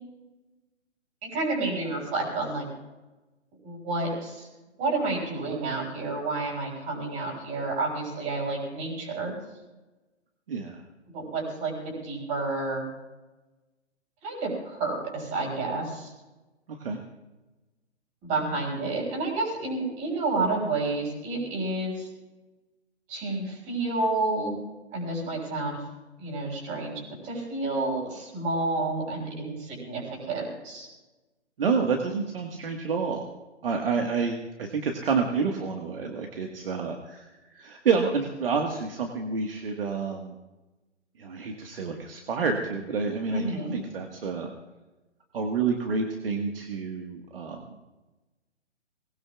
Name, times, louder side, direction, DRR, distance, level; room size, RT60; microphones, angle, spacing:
voice 1, 1.2-2.6 3.6-4.5 4.8-9.3 11.1-12.8 14.2-16.1 18.2-22.1 23.1-24.6 24.9-25.8 26.2-30.9 43.3-43.8, right 2 dB, 20° right, -1 dB, 6.8 m, -30 dB
voice 2, 10.5-10.8 16.7-17.0 31.6-33.2 33.6-37.3 37.5-40.3 41.2-43.4 43.7-44.5 45.3-47.6, right 5 dB, 55° right, 3 dB, 1.8 m, -28 dB
24.0 x 20.0 x 2.5 m, 1.1 s
figure-of-eight pair, 135°, 35 cm